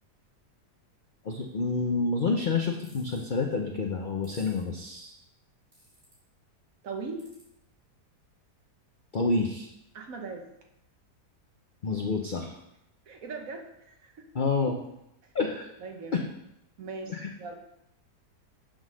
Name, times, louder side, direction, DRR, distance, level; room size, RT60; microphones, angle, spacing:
voice 1, 1.2-5.1 9.1-9.7 11.8-12.6 14.3-14.8 15.3-15.7 16.1-16.2 17.1-17.3, left 4 dB, 75° left, 2 dB, 0.4 m, -28 dB
sound 1, 2.8-3.2 4.2-4.6 5.7-6.1 7.2-7.4, right 1 dB, 35° right, 3.9 m, -55 dB
voice 2, 6.8-7.3 9.9-10.5 13.1-14.3 15.8-16.2 16.8-17.5, right 4 dB, 60° right, 3 dB, 1.3 m, -39 dB
8.4 x 3.8 x 6.2 m, 0.83 s
omnidirectional pair, 1.8 m